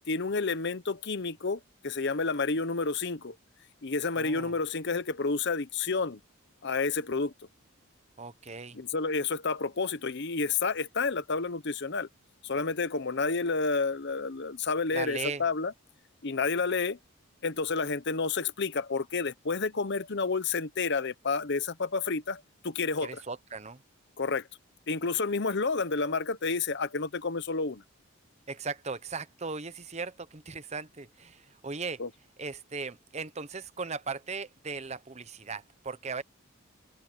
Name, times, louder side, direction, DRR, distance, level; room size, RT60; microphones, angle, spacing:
voice 1, 0.1-3.4 3.8-6.2 6.6-7.3 8.7-12.1 12.4-15.7 16.2-17.0 17.4-23.2 24.2-24.5 24.9-27.8 32.0-32.1, left 4 dB, 55° left, 0.9 m, -30 dB
voice 2, 4.2-4.5 8.2-8.8 14.9-15.4 23.0-23.8 28.5-32.0 32.4-36.2, right 4 dB, 30° right, 0.9 m, -38 dB
open air
head